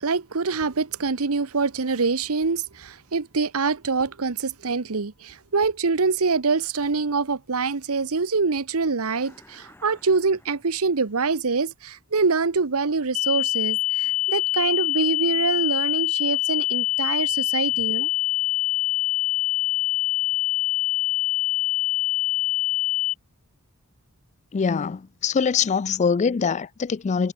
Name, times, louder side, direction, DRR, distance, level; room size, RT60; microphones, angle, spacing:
voice 1, 0.0-18.1, right 4 dB, 70° right, 1.0 m, -25 dB
sound 1, 9.0-11.3, left 1 dB, 10° left, 4.1 m, -54 dB
sound 2, 13.1-23.1, left 16 dB, 75° left, 1.0 m, -24 dB
voice 2, 24.5-27.3, left 6 dB, 30° left, 0.3 m, -23 dB
head